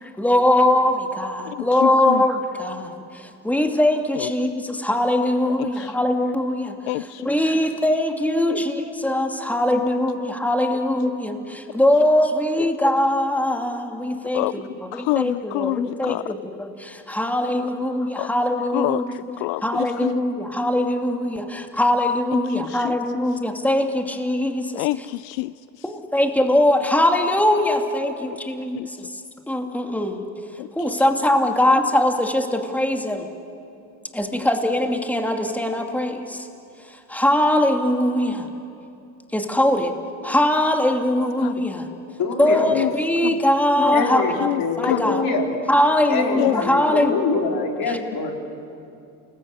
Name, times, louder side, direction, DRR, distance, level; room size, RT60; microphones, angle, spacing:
voice 1, 0.2-6.8 7.2-19.1 19.6-24.9 25.8-29.2 29.5-30.3 30.7-33.3 34.1-36.5 36.9-38.5 39.3-39.9 40.2-41.9 42.4-44.5 44.8-45.2 45.7-47.1 47.8-48.0, left 1 dB, 5° left, 3 dB, 2.6 m, -21 dB
voice 2, 1.4-2.2 4.2-4.3 5.5-6.0 6.9-7.3 8.5-8.6 12.6-12.7 14.3-16.3 18.2-18.3 18.7-20.1 22.5-23.0 24.7-25.9 28.7-28.9 30.6-31.1 41.4-41.7 42.7-42.9 43.2-43.4 44.4-45.0 46.4-46.6 46.8-47.0, left 22 dB, 70° left, 18 dB, 0.5 m, -27 dB
voice 3, 42.2-42.8 43.9-45.5 46.1-48.3, left 4 dB, 50° left, 1 dB, 4.6 m, -24 dB
28.5 x 20.0 x 8.5 m, 2.5 s
hypercardioid pair, 75°, 44 cm